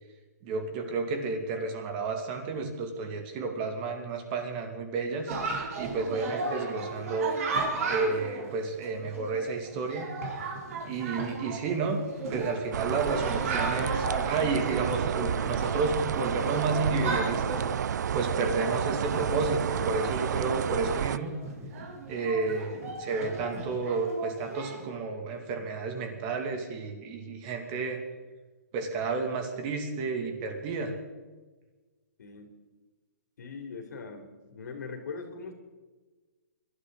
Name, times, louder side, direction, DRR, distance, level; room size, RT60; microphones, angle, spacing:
voice 1, 0.4-5.3 5.8-10.1 10.8-21.4 22.1-28.0 28.7-30.9, right 4 dB, 30° right, 5 dB, 2.5 m, -31 dB
Chatter, 5.3-24.9, right 3 dB, 55° right, 4.0 m, -36 dB
sound 1, 12.7-21.2, right 8 dB, 75° right, 0.5 m, -30 dB
voice 2, 32.2-32.5 33.4-35.5, left 4 dB, 75° left, 4 dB, 3.3 m, -41 dB
24.5 x 12.5 x 4.1 m, 1.3 s
hypercardioid pair, 155°, 9 cm